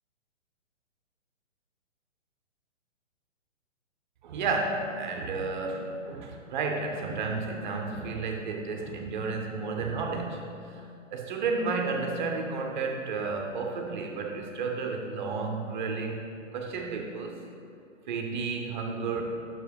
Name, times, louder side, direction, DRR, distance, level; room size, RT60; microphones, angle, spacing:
voice 1, 4.2-10.9 11.1-17.4 18.1-19.2, right 4 dB, 40° right, 2 dB, 0.7 m, -32 dB
6.3 x 4.6 x 5.2 m, 2.7 s
hypercardioid pair, 135°, 38 cm